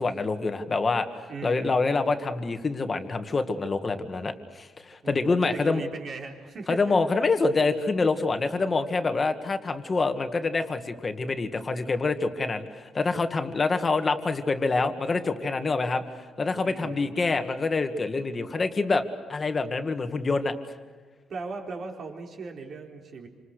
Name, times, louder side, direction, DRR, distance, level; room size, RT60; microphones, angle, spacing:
voice 1, 0.0-5.8 6.7-16.0 16.4-19.0 19.3-20.5, left 3 dB, 25° left, 7 dB, 1.9 m, -26 dB
voice 2, 1.3-1.8 5.0-7.0 16.6-17.1 21.3-23.3, right 4 dB, 45° right, 2 dB, 4.0 m, -38 dB
28.5 x 26.5 x 6.7 m, 1.5 s
cardioid pair, 145°, 0 cm